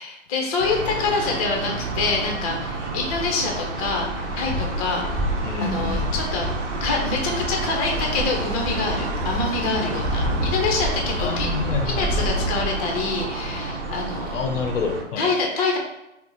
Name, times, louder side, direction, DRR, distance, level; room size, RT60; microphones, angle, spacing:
voice 1, 0.0-5.2 5.6-6.5 6.8-11.5 11.8-14.3 15.2-15.8, left 3 dB, 30° left, 1 dB, 0.7 m, -26 dB
sound 1, 0.6-15.0, right 2 dB, 70° right, 0.7 m, -30 dB
Wind, 3.1-12.9, equal, 5° right, 0.3 m, -29 dB
voice 2, 5.4-6.1 11.2-12.3 14.3-15.3, left 4 dB, 80° left, 4 dB, 0.6 m, -28 dB
2.7 x 2.1 x 3.8 m, 0.90 s
hypercardioid pair, 135°, 37 cm